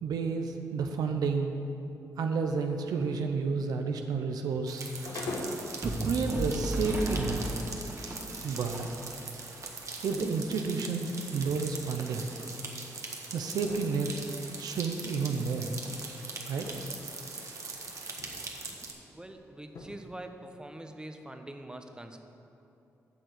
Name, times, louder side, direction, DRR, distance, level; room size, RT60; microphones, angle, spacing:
voice 1, 0.0-1.5 2.2-4.9 5.8-7.4 8.4-8.9 10.0-12.3 13.3-14.1 14.6-15.7 16.4-16.7, right 5 dB, 80° right, 5 dB, 0.7 m, -31 dB
sound 1, 2.3-5.8 6.2-6.3 6.9-7.0 7.5-13.0 13.3-14.6 15.0-17.1 17.4-18.5 18.8-18.9 19.3-19.4 19.6-20.2, left 2 dB, 75° left, 1.4 m, -45 dB
sound 2, 4.7-18.9, right 3 dB, 50° right, 1.6 m, -41 dB
sound 3, 5.8-9.3, right 1 dB, 30° right, 1.7 m, -35 dB
voice 2, 19.1-22.2, right 1 dB, 10° right, 5 dB, 1.1 m, -44 dB
9.1 x 6.4 x 8.0 m, 2.9 s
supercardioid pair, 50°, 7 cm